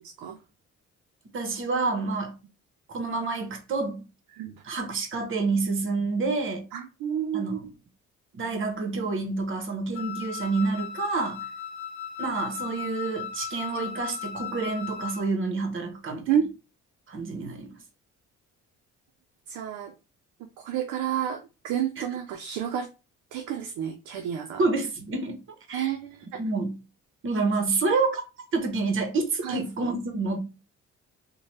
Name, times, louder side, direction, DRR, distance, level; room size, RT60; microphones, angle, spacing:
voice 1, 0.0-0.4 4.3-4.6 6.7-7.6 16.3-16.4 19.5-19.9 20.6-22.9 23.3-24.6 25.7-26.4 29.4-29.6, right 9 dB, 90° right, 0.5 m, -30 dB
voice 2, 1.3-2.3 2.9-4.0 4.6-6.6 7.3-7.7 8.3-11.4 12.2-16.2 17.1-17.7 22.0-22.1 24.6-25.4 25.7-25.9 26.4-26.8 27.2-28.2 28.5-30.4, right 3 dB, 45° right, 0.9 m, -28 dB
Wind instrument woodwind instrument, 9.9-15.3, left 8 dB, 75° left, 0.6 m, -37 dB
2.8 x 2.2 x 3.1 m
cardioid pair, 90°, 30 cm